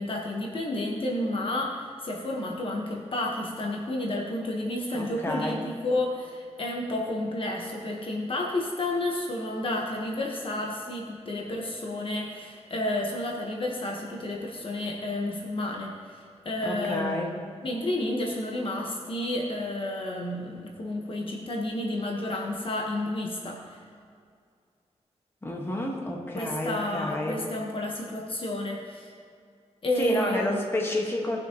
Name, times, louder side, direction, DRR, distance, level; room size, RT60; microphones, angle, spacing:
voice 1, 0.0-23.8 26.3-29.1 29.8-30.6, left 1 dB, 50° left, -1 dB, 1.1 m, -31 dB
voice 2, 4.9-5.6 16.6-17.3 25.4-27.4 30.0-31.4, left 1 dB, 20° left, -1 dB, 1.4 m, -30 dB
18.0 x 6.2 x 2.9 m, 2.3 s
wide cardioid pair, 125°, 12 cm